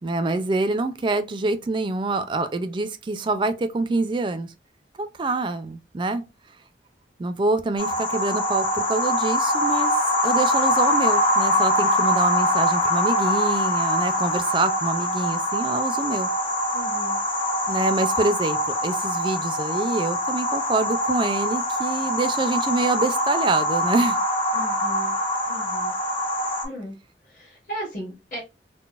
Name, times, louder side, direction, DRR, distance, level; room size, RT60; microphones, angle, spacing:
voice 1, 0.0-4.5 5.0-6.2 7.2-9.9 10.2-16.3 17.7-24.2, right 2 dB, 25° right, 0.3 m, -26 dB
sound 1, 7.8-26.6, left 1 dB, 30° left, 0.7 m, -23 dB
voice 2, 16.7-17.2 24.5-25.1 25.5-25.9 26.6-26.9 27.2-28.4, equal, 50° left, 1.5 m, -36 dB
3.8 x 2.0 x 2.4 m
head